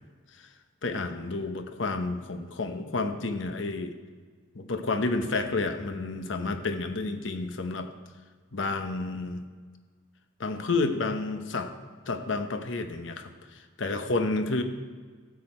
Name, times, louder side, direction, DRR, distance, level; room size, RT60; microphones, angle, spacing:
voice 1, 0.8-3.9 4.5-7.9 8.5-9.4 10.4-11.7 12.1-14.6, left 3 dB, 85° left, 7 dB, 0.9 m, -30 dB
13.0 x 8.6 x 4.4 m, 1.5 s
head